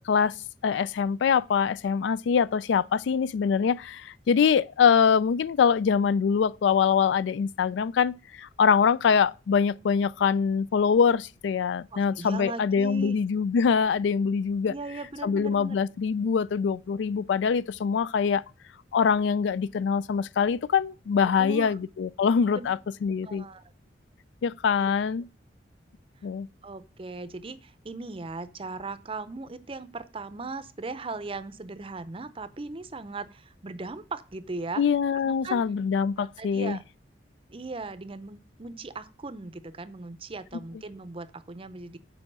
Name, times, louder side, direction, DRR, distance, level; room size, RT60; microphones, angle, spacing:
voice 1, 0.6-14.7 15.2-18.4 18.9-23.5 24.4-25.3 26.2-26.5 34.8-36.8, left 6 dB, 70° left, 0.3 m, -24 dB
voice 2, 11.9-13.2 14.7-15.8 21.2-21.8 22.5-22.7 23.2-23.6 24.8-25.0 26.6-34.8 35.1-35.6 36.2-36.8 37.5-42.0, right 3 dB, 30° right, 0.6 m, -38 dB
7.7 x 4.7 x 6.1 m
head